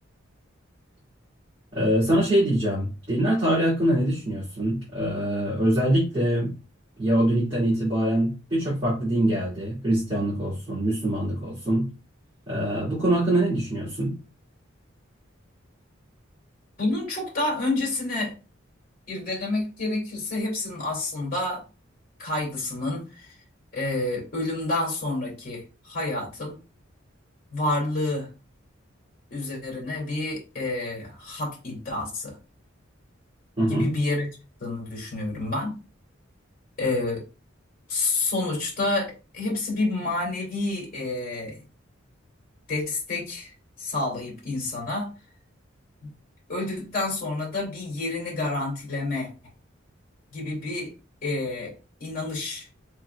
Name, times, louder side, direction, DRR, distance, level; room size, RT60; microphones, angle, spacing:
voice 1, 1.7-6.5 7.0-11.9 12.5-14.1 33.6-33.9, right 1 dB, 25° right, -8 dB, 2.2 m, -24 dB
voice 2, 16.8-18.3 19.1-21.6 22.2-23.3 23.7-26.6 27.5-28.3 29.3-32.4 33.7-34.3 34.6-35.7 36.8-37.2 37.9-41.6 42.7-43.5 43.8-45.1 46.5-49.3 50.3-50.9 51.2-51.7 52.0-52.7, left 2 dB, 45° left, -2 dB, 2.5 m, -29 dB
4.6 x 4.2 x 2.3 m, 0.31 s
head